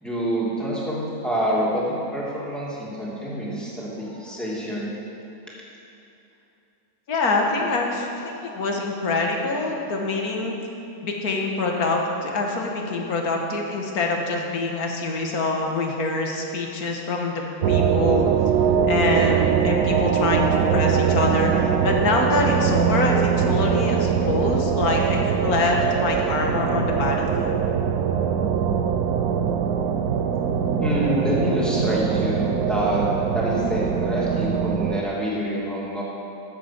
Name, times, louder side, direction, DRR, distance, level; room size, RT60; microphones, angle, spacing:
voice 1, 0.0-4.9 30.8-33.0 33.3-36.0, equal, ahead, -7 dB, 2.6 m, -26 dB
voice 2, 7.1-10.5 11.0-18.3 18.9-27.5, left 3 dB, 75° left, 1 dB, 1.8 m, -25 dB
sound 1, 17.6-35.0, right 7 dB, 80° right, 1.2 m, -22 dB
14.0 x 8.0 x 6.0 m, 2.8 s
omnidirectional pair, 1.6 m